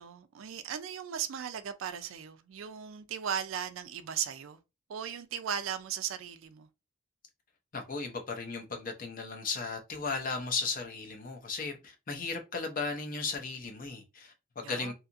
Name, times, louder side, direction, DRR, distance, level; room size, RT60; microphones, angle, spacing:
voice 1, 0.0-4.6 4.9-6.7 14.6-14.9, right 8 dB, 70° right, 0.4 m, -37 dB
voice 2, 7.7-14.9, left 4 dB, 40° left, 0.6 m, -36 dB
2.8 x 2.4 x 2.5 m
head